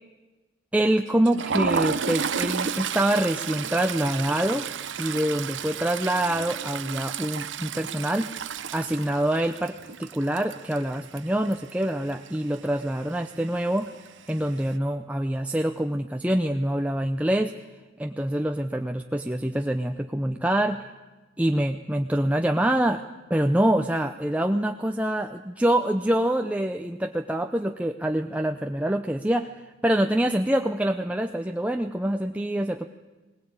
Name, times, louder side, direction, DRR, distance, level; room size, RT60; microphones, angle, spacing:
voice 1, 0.7-4.7 5.0-13.9 14.3-17.5 18.0-20.9 21.4-23.0 23.3-29.5 29.8-32.9, right 1 dB, 10° right, 4 dB, 0.6 m, -25 dB
Toilet flush, 1.1-11.8 12.1-12.4 12.7-12.8 13.8-14.3, right 6 dB, 90° right, 0.8 m, -32 dB
20.5 x 19.5 x 8.8 m, 1.2 s
head